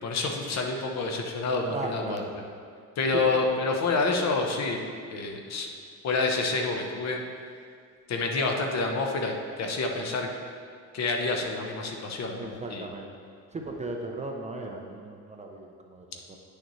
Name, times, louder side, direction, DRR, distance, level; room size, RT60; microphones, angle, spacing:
voice 1, 0.0-2.2 3.0-4.8 5.1-5.7 6.0-7.2 8.1-10.3 10.9-12.9, left 3 dB, 50° left, 2 dB, 0.9 m, -28 dB
voice 2, 1.7-2.3 3.1-3.3 12.4-13.1 13.5-16.4, right 2 dB, 20° right, 1 dB, 0.5 m, -37 dB
9.8 x 6.5 x 3.1 m, 2.2 s
cardioid pair, 150°, 34 cm